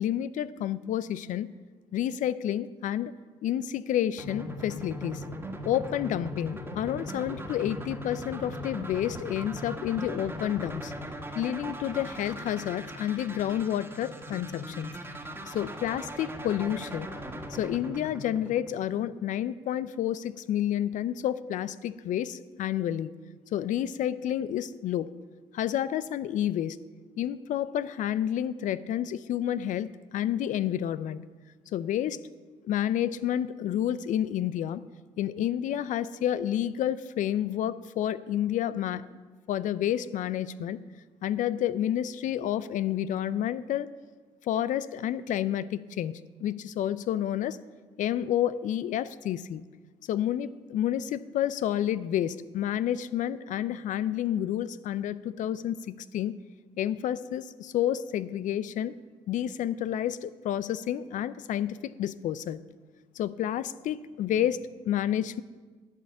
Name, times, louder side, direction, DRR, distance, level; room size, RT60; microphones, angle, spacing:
voice 1, 0.0-1.5 1.9-3.1 3.4-5.2 5.6-10.9 11.3-14.9 15.5-17.1 17.5-23.1 23.5-25.1 25.5-26.8 27.2-31.2 31.7-32.2 32.6-34.8 35.2-39.2 39.5-40.8 41.2-43.9 44.4-47.6 48.0-49.6 50.1-56.4 56.8-59.0 59.3-62.6 63.2-65.4, left 11 dB, 65° left, 16 dB, 0.5 m, -30 dB
sound 1, 4.2-19.1, equal, 15° right, 1.8 m, -39 dB
11.5 x 5.4 x 8.2 m, 1.4 s
supercardioid pair, 65°, 14 cm